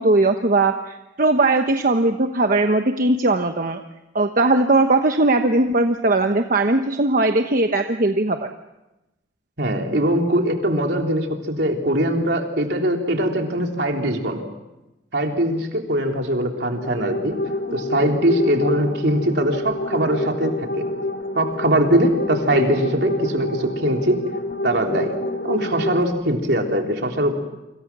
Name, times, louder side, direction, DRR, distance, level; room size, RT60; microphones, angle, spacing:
voice 1, 0.0-3.8 4.1-8.5, right 2 dB, 50° right, 6 dB, 1.1 m, -19 dB
voice 2, 9.6-14.4 15.1-17.4 17.7-20.9 21.3-24.2 24.6-25.1 25.4-27.4, right 1 dB, 70° right, 2 dB, 3.7 m, -21 dB
sound 1, 16.6-26.0, left 1 dB, 80° left, 3.1 m, -28 dB
29.0 x 26.0 x 6.2 m, 0.99 s
head